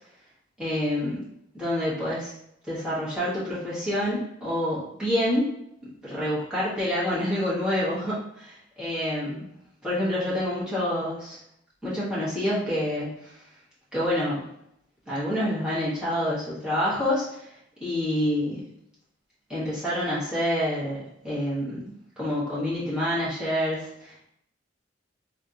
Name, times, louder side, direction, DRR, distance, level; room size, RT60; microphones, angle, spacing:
voice 1, 0.6-1.2 1.5-2.3 2.7-5.5 6.0-9.5 9.8-11.4 11.8-13.3 13.9-14.4 15.1-17.4 17.8-18.6 19.5-21.0 21.2-21.8 22.2-24.2, left 1 dB, 5° right, -10 dB, 1.4 m, -27 dB
3.2 x 2.9 x 2.6 m, 0.75 s
head